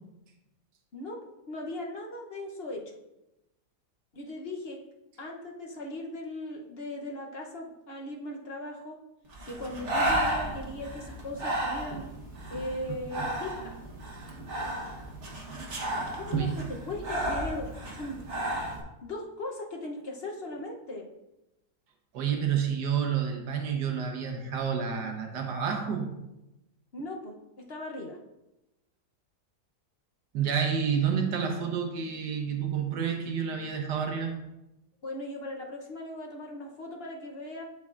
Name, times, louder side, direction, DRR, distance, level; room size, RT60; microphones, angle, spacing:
voice 1, 1.5-3.0 4.1-4.8 5.2-9.0 9.4-12.0 12.5-13.8 16.2-18.3 19.0-21.1 26.9-28.2 35.0-37.6, left 1 dB, 45° left, 1 dB, 0.9 m, -38 dB
Breathing, 9.3-18.8, right 1 dB, 45° right, 1.5 m, -33 dB
voice 2, 22.1-26.1 30.3-34.3, right 7 dB, 85° right, 2 dB, 1.6 m, -29 dB
12.0 x 4.6 x 2.4 m, 0.93 s
omnidirectional pair, 1.8 m